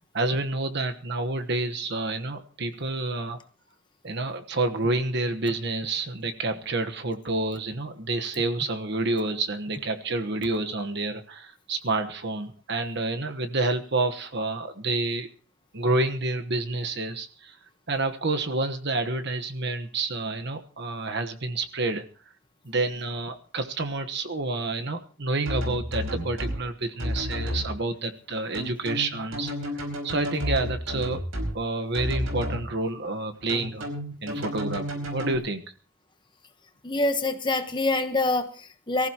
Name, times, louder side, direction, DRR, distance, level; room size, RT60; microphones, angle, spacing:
voice 1, 0.1-3.4 4.0-15.3 15.7-17.6 17.9-22.0 22.6-31.2 31.5-33.9 34.2-35.6, right 2 dB, 55° right, 7 dB, 1.2 m, -29 dB
sound 1, 25.5-26.6 27.0-27.7 28.5-31.5 31.9-32.6 33.5-35.3, equal, 75° right, 4.9 m, -31 dB
voice 2, 36.8-39.1, left 2 dB, 20° left, 8 dB, 1.1 m, -25 dB
23.5 x 15.0 x 3.0 m, 0.40 s
head